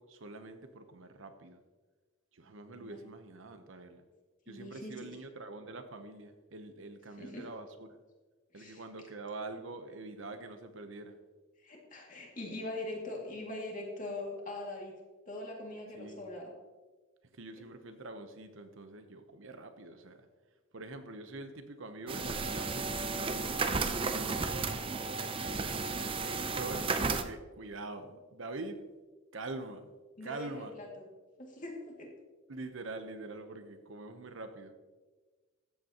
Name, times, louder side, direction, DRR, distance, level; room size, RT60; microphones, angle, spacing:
voice 1, 0.0-1.6 2.3-4.0 4.5-8.0 8.5-11.2 16.0-16.2 17.3-20.3 20.7-24.8 25.5-26.0 26.5-28.8 29.3-29.9 30.2-30.8 32.5-34.7, right 2 dB, 65° right, 7 dB, 0.9 m, -45 dB
voice 2, 4.5-5.1 7.2-7.5 8.5-8.8 11.6-15.0 15.3-16.5 30.2-30.9 31.4-32.1, left 2 dB, 40° left, -1 dB, 2.2 m, -42 dB
sound 1, 22.1-27.2, right 4 dB, 25° right, 0.5 m, -33 dB
14.0 x 8.1 x 2.9 m, 1.3 s
head